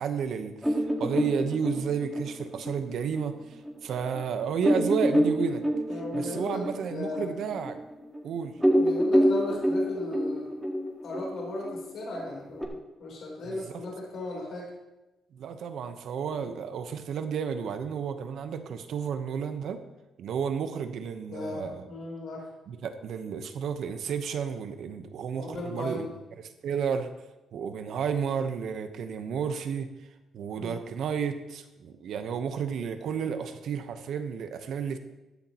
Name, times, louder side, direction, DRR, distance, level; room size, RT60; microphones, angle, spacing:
voice 1, 0.0-5.6 6.1-7.8 8.2-8.6 13.4-13.6 15.3-19.8 20.2-21.9 22.7-26.1 26.4-27.1 27.5-29.9 30.3-35.0, right 7 dB, 70° right, 8 dB, 1.0 m, -32 dB
sound 1, 0.6-3.7 4.2-4.3 4.6-8.2 8.5-12.7, equal, ahead, 1.8 m, -27 dB
voice 2, 5.9-6.6 6.9-7.3 8.8-10.5 11.0-14.7 16.3-16.5 21.3-22.5 25.3-26.1 30.5-30.8, left 2 dB, 65° left, -2 dB, 3.7 m, -36 dB
14.5 x 10.5 x 3.0 m, 1.0 s
cardioid pair, 90°, 0 cm